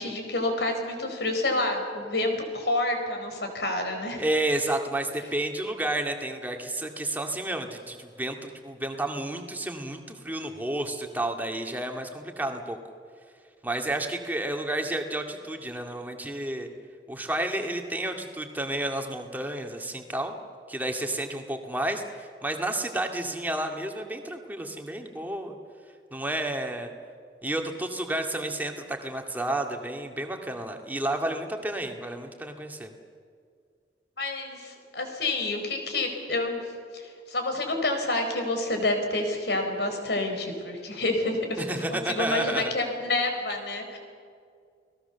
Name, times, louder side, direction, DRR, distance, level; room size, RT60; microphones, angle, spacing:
voice 1, 0.0-4.2 34.2-44.0, left 2 dB, 70° left, 5 dB, 4.5 m, -28 dB
voice 2, 4.2-12.8 13.6-16.7 17.1-20.3 20.7-25.6 26.1-26.9 27.4-32.9 41.6-42.7, right 1 dB, 10° right, 3 dB, 2.1 m, -31 dB
30.0 x 19.0 x 7.0 m, 2.1 s
head